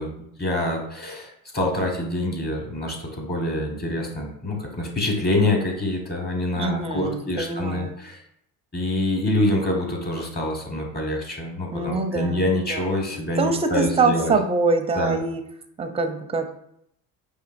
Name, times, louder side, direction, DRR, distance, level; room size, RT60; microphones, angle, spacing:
voice 1, 0.0-8.2 8.7-14.3 15.0-15.2, left 1 dB, 25° left, 0 dB, 1.4 m, -26 dB
voice 2, 6.6-8.0 11.7-12.9 13.4-15.4 15.8-16.5, right 3 dB, 15° right, 6 dB, 0.5 m, -24 dB
5.0 x 2.5 x 2.6 m, 0.74 s
hypercardioid pair, 70°, 42 cm